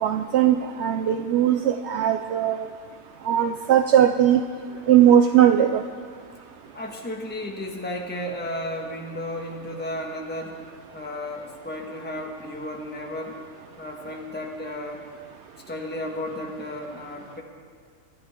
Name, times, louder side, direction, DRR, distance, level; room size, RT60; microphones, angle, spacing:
voice 1, 0.0-2.7 3.2-4.4 4.9-5.8, right 10 dB, 70° right, 7 dB, 0.6 m, -19 dB
voice 2, 6.7-10.6 10.9-13.4 13.8-15.0 15.7-17.4, left 1 dB, 5° left, -1 dB, 1.4 m, -33 dB
26.5 x 11.5 x 3.7 m, 2.1 s
omnidirectional pair, 1.6 m